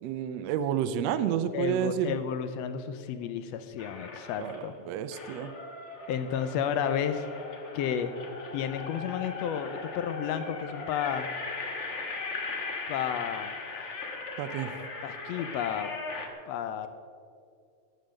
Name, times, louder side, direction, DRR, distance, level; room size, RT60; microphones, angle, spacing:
voice 1, 0.0-2.2 4.4-5.5 14.4-14.7, right 9 dB, 75° right, 11 dB, 1.7 m, -30 dB
voice 2, 1.5-4.7 6.1-7.3 7.7-8.1 8.5-11.3 12.9-14.3 15.0-15.9 16.5-16.9, left 8 dB, 75° left, 9 dB, 1.6 m, -32 dB
sound 1, 3.8-4.7 5.1-16.3, left 3 dB, 55° left, 0.7 m, -39 dB
12.5 x 7.7 x 6.4 m, 2.2 s
omnidirectional pair, 3.4 m